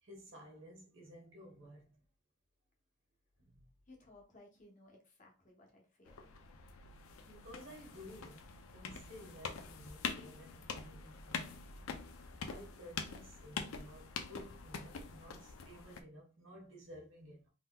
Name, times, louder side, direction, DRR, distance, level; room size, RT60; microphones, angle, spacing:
voice 1, 0.0-2.0 3.4-3.7 7.3-11.6 12.5-17.5, equal, 65° right, 1.2 m, -54 dB
voice 2, 3.9-6.3, left 2 dB, 35° left, 0.8 m, -60 dB
sound 1, 6.1-16.0, left 5 dB, 85° left, 0.5 m, -45 dB
3.6 x 2.8 x 2.2 m
head